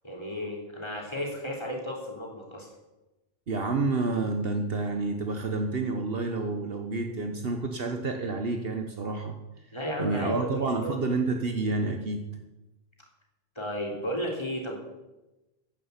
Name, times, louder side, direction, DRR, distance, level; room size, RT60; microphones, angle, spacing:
voice 1, 0.0-2.7 9.7-11.0 13.6-14.8, equal, 25° left, -1 dB, 3.6 m, -33 dB
voice 2, 3.5-9.3 10.0-12.2, right 3 dB, 65° right, 4 dB, 1.4 m, -29 dB
11.0 x 10.0 x 8.2 m, 1.0 s
omnidirectional pair, 1.1 m